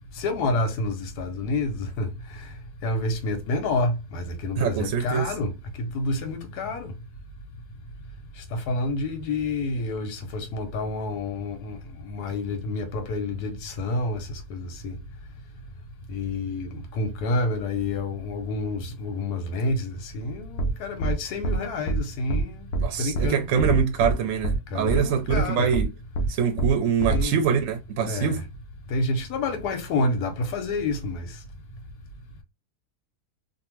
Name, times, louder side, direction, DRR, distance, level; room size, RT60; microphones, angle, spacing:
voice 1, 0.1-2.5 2.8-5.5 5.8-6.9 8.4-15.0 16.1-22.7 23.0-23.4 24.7-25.7 27.1-27.3 28.1-28.3 28.9-31.4, left 2 dB, 90° left, 1.2 m, -29 dB
voice 2, 4.6-5.4 22.8-25.9 26.3-28.5, right 7 dB, 70° right, 0.8 m, -24 dB
sound 1, 20.6-20.7 21.0-21.1 21.4-21.6 21.9-22.0 22.3-22.4 22.7-22.8 23.1-23.3 23.6-24.1 24.4-24.6 24.9-25.0 25.3-25.4 25.7-25.8 26.1-26.3 26.6-26.7 27.0-27.2, right 3 dB, 75° left, 1.0 m, -24 dB
2.7 x 2.4 x 3.0 m
omnidirectional pair, 1.6 m